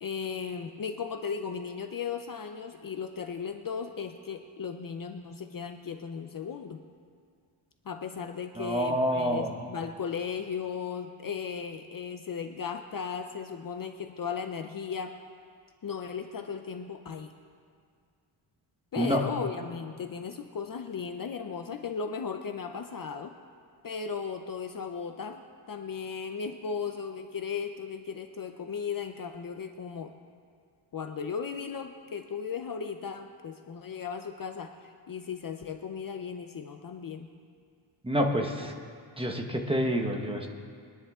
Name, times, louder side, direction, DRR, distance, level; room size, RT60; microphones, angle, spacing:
voice 1, 0.0-6.8 7.8-15.2 15.8-17.3 18.9-23.4 23.8-30.2 30.9-37.3, left 6 dB, 45° left, 6 dB, 0.6 m, -36 dB
voice 2, 8.6-9.5 19.0-19.2 38.0-38.7 39.2-40.5, equal, 10° right, 2 dB, 1.1 m, -27 dB
24.0 x 10.5 x 3.7 m, 2.2 s
wide cardioid pair, 180°, 48 cm